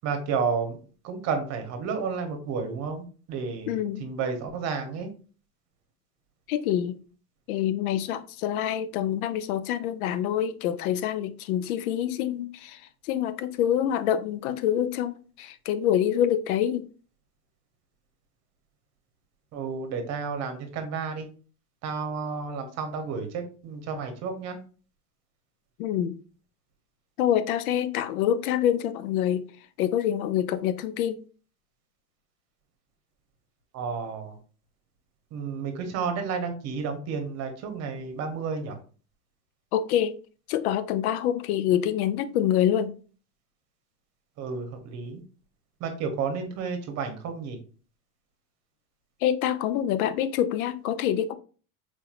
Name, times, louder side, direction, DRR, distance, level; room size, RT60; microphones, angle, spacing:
voice 1, 0.0-0.8 1.0-5.1 19.5-21.3 21.8-24.6 33.7-34.4 35.3-38.8 44.4-45.2 45.8-47.6, right 5 dB, 40° right, 0.9 m, -31 dB
voice 2, 3.7-4.0 6.5-7.0 7.5-12.8 13.1-16.8 25.8-26.2 27.2-29.4 29.8-31.2 39.7-40.1 40.5-42.9 49.2-51.3, left 10 dB, 85° left, 0.6 m, -26 dB
4.4 x 2.9 x 2.5 m
supercardioid pair, 140°, 42 cm